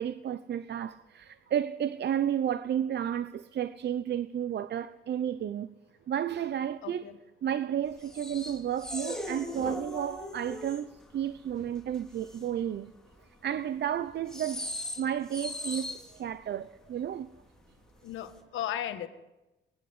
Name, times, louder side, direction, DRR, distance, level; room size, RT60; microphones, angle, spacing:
voice 1, 0.0-5.7 6.1-7.1 7.4-10.9 11.1-12.9 13.2-14.7 15.0-17.3, right 9 dB, 60° right, 0.9 m, -32 dB
voice 2, 6.8-7.2 18.0-19.1, left 11 dB, 85° left, 1.6 m, -35 dB
sound 1, 7.9-11.0 11.3-12.7 13.1-13.3 14.1-16.3 17.1-17.2 17.4-17.6 18.1-18.4, left 1 dB, 5° left, 3.4 m, -39 dB
23.0 x 19.5 x 8.1 m
cardioid pair, 90°, 20 cm